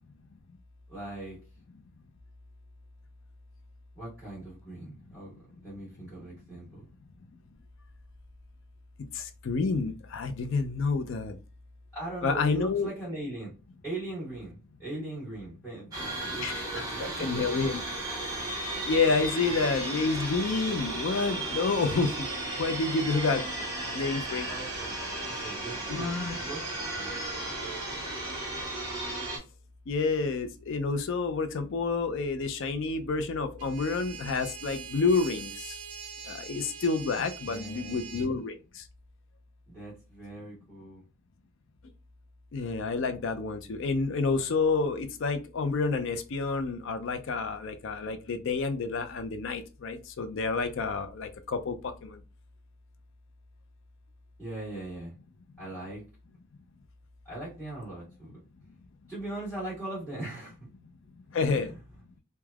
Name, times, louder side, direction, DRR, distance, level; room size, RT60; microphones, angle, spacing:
voice 1, 0.9-1.4 3.9-6.9 11.9-13.5 13.8-17.5 19.1-19.2 24.4-25.0 25.2-26.1 26.4-27.2 37.4-38.0 39.7-41.0 54.4-55.1 55.6-56.0 57.2-58.4 59.1-60.6 61.3-61.8, right 2 dB, 5° left, -11 dB, 1.5 m, -40 dB
voice 2, 9.1-11.4 12.2-12.9 16.4-17.8 18.9-22.3 22.6-24.5 25.9-26.4 29.9-35.8 36.2-38.9 42.5-52.2 61.3-61.7, left 4 dB, 55° left, 9 dB, 0.4 m, -29 dB
sound 1, 15.9-29.4, right 2 dB, 15° right, 0.8 m, -35 dB
sound 2, 33.6-38.3, right 6 dB, 75° right, 0.4 m, -43 dB
3.3 x 2.1 x 2.3 m, 0.31 s
head